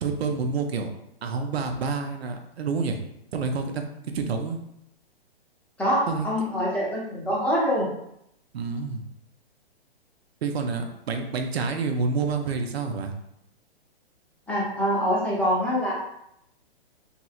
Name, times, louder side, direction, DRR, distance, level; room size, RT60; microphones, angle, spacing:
voice 1, 0.0-0.9 1.2-3.0 3.3-3.8 4.1-4.6 6.1-6.3 8.5-9.0 10.4-13.1, right 4 dB, 75° right, 5 dB, 0.6 m, -28 dB
voice 2, 5.8-7.9 14.5-15.9, equal, 5° left, -6 dB, 0.6 m, -25 dB
2.9 x 2.9 x 2.4 m, 0.78 s
hypercardioid pair, 135°, 31 cm